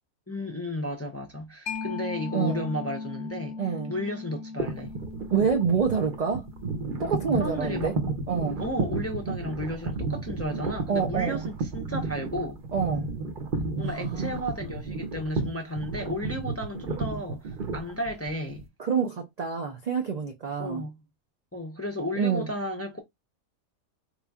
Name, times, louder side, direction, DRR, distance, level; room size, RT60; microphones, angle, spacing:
voice 1, 0.3-4.9 7.4-8.0 8.6-12.6 13.8-18.6 20.6-20.9 21.5-23.0, left 1 dB, 20° left, 0.4 m, -33 dB
Mallet percussion, 1.7-8.9, left 4 dB, 70° left, 0.9 m, -39 dB
voice 2, 2.3-2.7 3.6-3.9 5.3-6.5 7.0-7.9 8.3-8.6 10.9-11.4 12.7-13.1 13.8-14.4 18.8-20.8 22.2-22.5, right 6 dB, 80° right, 0.3 m, -27 dB
sound 1, 4.6-18.6, right 3 dB, 45° right, 0.8 m, -32 dB
3.9 x 3.0 x 2.3 m
omnidirectional pair, 1.4 m